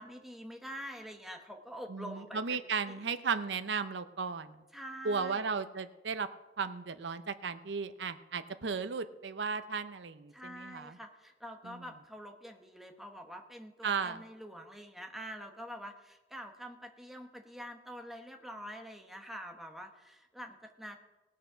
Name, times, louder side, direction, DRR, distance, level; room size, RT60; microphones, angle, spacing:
voice 1, 0.0-3.0 4.7-5.4 10.3-21.0, equal, ahead, 4 dB, 1.1 m, -46 dB
voice 2, 1.9-4.6 5.0-6.3 6.6-11.0 11.6-11.8 13.8-14.2, right 5 dB, 85° right, 11 dB, 0.6 m, -35 dB
18.0 x 6.5 x 5.7 m, 1.1 s
head